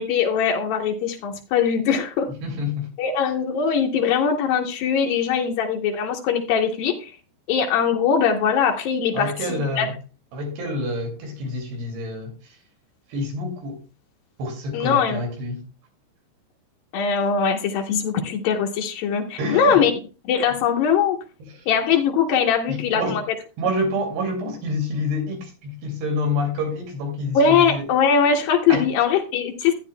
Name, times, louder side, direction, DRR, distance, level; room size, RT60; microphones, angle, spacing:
voice 1, 0.0-2.3 3.0-7.1 7.5-9.9 14.7-15.2 16.9-19.9 20.3-21.2 21.7-23.2 27.3-29.7, left 6 dB, 85° left, 2.0 m, -21 dB
voice 2, 2.4-2.9 9.1-9.9 10.3-12.6 13.1-13.8 14.4-15.6 19.4-19.8 21.5-21.7 22.7-23.2 23.6-27.9 28.7-28.8, left 1 dB, 60° right, 4.2 m, -27 dB
15.0 x 9.3 x 2.2 m
omnidirectional pair, 5.6 m